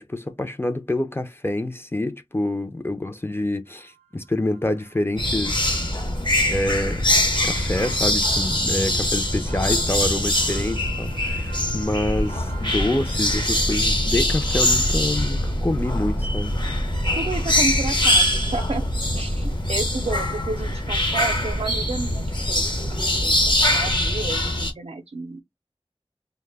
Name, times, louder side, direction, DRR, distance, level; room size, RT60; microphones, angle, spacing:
voice 1, 0.0-5.8 6.5-7.0 7.4-16.6, left 1 dB, 20° left, 0.4 m, -27 dB
sound 1, 3.7-3.8 4.5-4.6 4.9-5.0 5.5-19.9, equal, 90° left, 1.0 m, -33 dB
sound 2, 5.2-24.7, left 1 dB, 50° left, 0.7 m, -23 dB
voice 2, 17.2-18.8 19.1-25.4, right 3 dB, 80° right, 0.4 m, -31 dB
2.1 x 2.0 x 3.3 m
wide cardioid pair, 40°, 10 cm